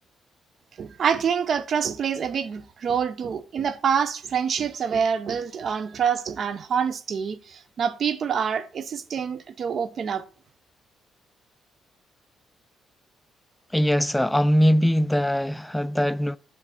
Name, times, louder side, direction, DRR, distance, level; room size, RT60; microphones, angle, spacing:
voice 1, 0.8-10.2, right 7 dB, 55° right, 0.6 m, -26 dB
voice 2, 13.7-16.4, equal, 5° left, 0.3 m, -21 dB
8.2 x 3.4 x 4.2 m
cardioid pair, 90°, 0 cm